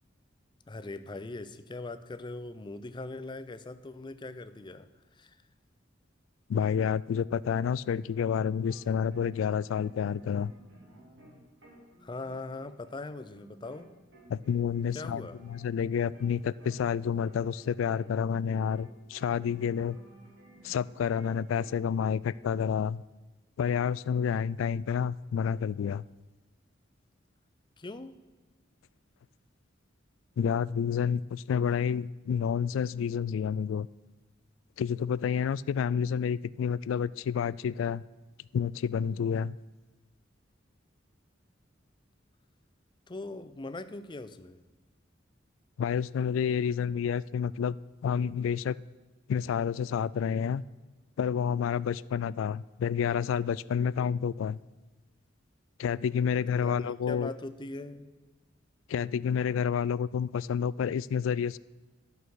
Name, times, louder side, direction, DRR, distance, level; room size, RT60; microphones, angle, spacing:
voice 1, 0.7-4.9 5.2-5.4 12.0-13.9 14.9-15.4 27.8-28.2 43.1-44.6 56.5-58.1, left 2 dB, 25° left, 12 dB, 0.5 m, -41 dB
voice 2, 6.5-10.5 14.3-20.0 20.6-23.0 23.6-26.0 30.4-33.9 34.8-38.0 38.5-39.6 45.8-47.8 48.0-48.8 49.3-50.6 51.2-54.6 55.8-57.3 58.9-61.6, left 7 dB, 90° left, 21 dB, 0.3 m, -29 dB
sound 1, 8.0-8.8 9.1-13.9 14.1-18.9 19.1-21.8, right 1 dB, 65° right, 3.6 m, -55 dB
11.0 x 6.7 x 6.3 m, 1.2 s
head